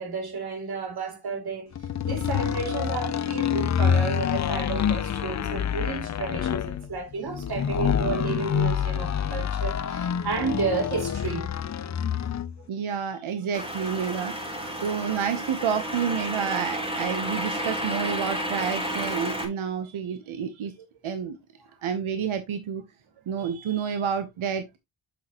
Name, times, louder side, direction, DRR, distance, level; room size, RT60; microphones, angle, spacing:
voice 1, 0.0-1.7 2.0-11.5, right 4 dB, 55° right, 2.8 m, -32 dB
sound 1, 1.8-12.5, left 8 dB, 40° left, 0.5 m, -27 dB
voice 2, 12.7-20.7 21.0-21.4 21.8-22.8 23.3-24.8, right 7 dB, 90° right, 1.1 m, -29 dB
sound 2, 13.5-19.5, equal, 10° right, 3.5 m, -31 dB
8.2 x 6.0 x 3.0 m
wide cardioid pair, 125°, 47 cm